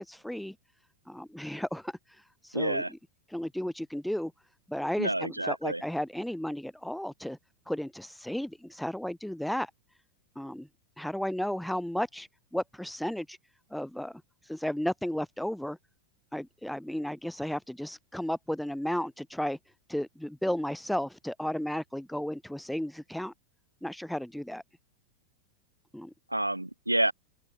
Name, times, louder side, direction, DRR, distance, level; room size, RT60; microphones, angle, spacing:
voice 1, 0.1-0.5 1.1-1.9 2.4-2.8 3.3-4.3 4.7-7.4 7.7-9.7 10.4-10.7 11.0-13.4 13.7-14.2 14.5-15.8 16.3-19.6 19.9-23.3 23.8-24.6 25.9-26.1, left 1 dB, ahead, 2.3 m, -33 dB
voice 2, 2.5-2.9 5.0-5.8 26.3-27.1, right 1 dB, 85° right, 3.1 m, -28 dB
open air
figure-of-eight pair, 90°, 0 cm